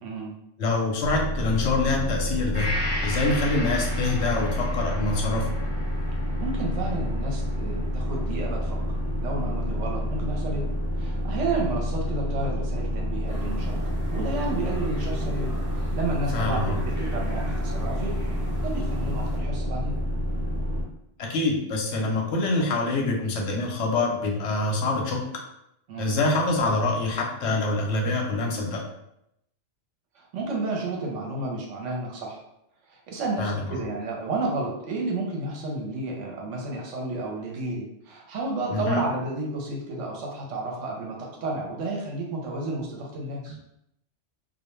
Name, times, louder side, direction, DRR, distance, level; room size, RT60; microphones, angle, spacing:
voice 1, 0.0-0.3 6.4-8.8 9.2-10.6 11.0-13.8 14.1-18.1 18.6-19.9 25.9-26.1 30.1-32.4 32.9-43.6, right 2 dB, 80° right, -1 dB, 1.0 m, -31 dB
voice 2, 0.6-2.7 3.0-5.5 16.3-16.8 21.2-25.2 26.0-28.8 33.4-33.7 38.7-39.0 43.5-43.6, left 2 dB, 70° left, 0 dB, 0.8 m, -25 dB
sound 1, 1.0-20.8, left 1 dB, 45° right, 0.9 m, -28 dB
Gong, 2.5-10.2 10.6-10.7, left 1 dB, 25° left, 1.1 m, -37 dB
sound 2, 13.3-19.4, right 1 dB, 25° right, 0.4 m, -37 dB
2.3 x 2.1 x 3.0 m, 0.81 s
omnidirectional pair, 1.3 m